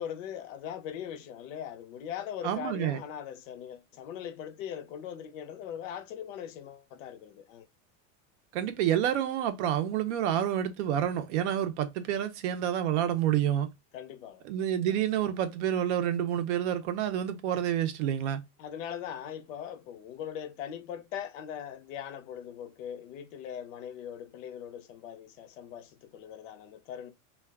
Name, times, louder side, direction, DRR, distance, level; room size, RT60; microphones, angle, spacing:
voice 1, 0.0-7.7 13.9-14.4 18.6-27.1, left 9 dB, 85° left, 0.6 m, -40 dB
voice 2, 2.4-3.0 8.5-13.7 14.4-18.4, right 10 dB, 65° right, 0.6 m, -28 dB
2.3 x 2.2 x 3.3 m
supercardioid pair, 180°, 37 cm